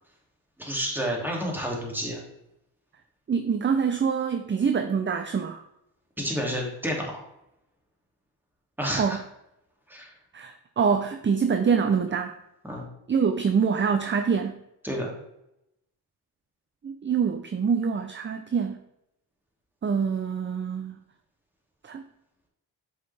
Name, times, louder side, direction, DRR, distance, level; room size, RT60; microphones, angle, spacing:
voice 1, 0.6-2.2 6.2-7.1 8.8-9.2 9.9-10.1 12.6-12.9 14.8-15.1, equal, 5° right, -1 dB, 2.4 m, -30 dB
voice 2, 3.3-5.6 8.9-9.2 10.3-12.4 13.1-14.6 16.8-18.8 19.8-20.9 21.8-22.0, right 6 dB, 30° right, 7 dB, 0.6 m, -25 dB
7.7 x 5.5 x 3.4 m, 0.84 s
cardioid pair, 70°, 40 cm